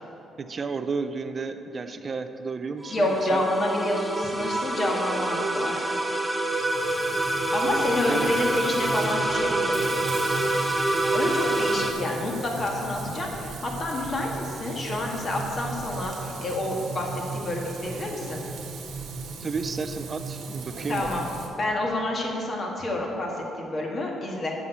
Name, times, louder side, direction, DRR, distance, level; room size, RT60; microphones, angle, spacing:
voice 1, 0.4-3.4 8.1-8.5 19.4-21.1, right 4 dB, 40° right, 9 dB, 0.4 m, -32 dB
sound 1, 2.8-11.9, right 2 dB, 10° right, 0.9 m, -26 dB
voice 2, 2.9-5.9 7.5-10.0 11.1-18.4 20.9-21.2 21.6-24.5, left 1 dB, 45° left, -1 dB, 1.7 m, -28 dB
Frying (food), 6.5-21.5, right 4 dB, 75° right, 1.2 m, -37 dB
7.0 x 6.1 x 6.8 m, 2.8 s
cardioid pair, 90°, 0 cm